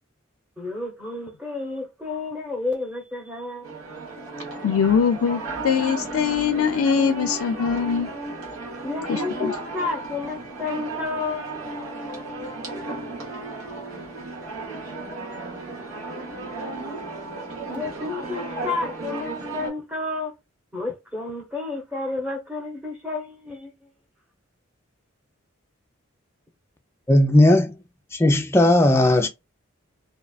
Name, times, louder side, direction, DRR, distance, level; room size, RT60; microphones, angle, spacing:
voice 1, 0.6-3.7 8.8-11.7 17.7-20.3 20.7-23.9, left 3 dB, 5° right, 0.9 m, -31 dB
sound 1, 3.6-19.7, right 2 dB, 85° right, 1.1 m, -34 dB
voice 2, 4.6-8.1 9.1-9.5, left 6 dB, 90° left, 0.4 m, -22 dB
voice 3, 27.1-27.7 28.1-29.3, left 1 dB, 10° left, 0.3 m, -16 dB
2.8 x 2.3 x 2.3 m
head